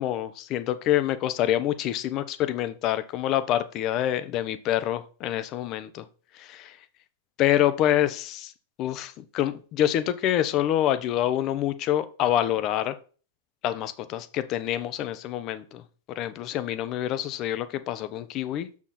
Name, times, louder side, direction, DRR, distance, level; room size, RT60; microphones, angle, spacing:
voice 1, 0.0-6.0 6.3-6.8 7.4-8.5 8.8-13.0 13.6-15.8 16.2-18.7, left 12 dB, 40° left, 13 dB, 0.8 m, -26 dB
6.1 x 6.0 x 4.2 m, 0.38 s
hypercardioid pair, 125°, 0 cm